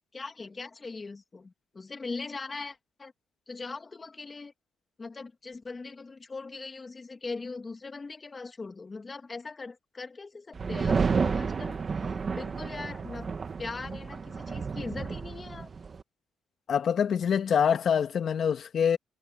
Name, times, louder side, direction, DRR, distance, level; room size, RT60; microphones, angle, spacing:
voice 1, 0.1-3.1 3.5-4.5 5.0-11.8 12.3-13.3 13.6-15.7, left 3 dB, 30° left, 2.5 m, -40 dB
sound 1, 10.6-16.0, right 5 dB, 40° right, 1.8 m, -31 dB
voice 2, 16.7-19.0, left 7 dB, 60° left, 2.3 m, -25 dB
cardioid pair, 90°, 0 cm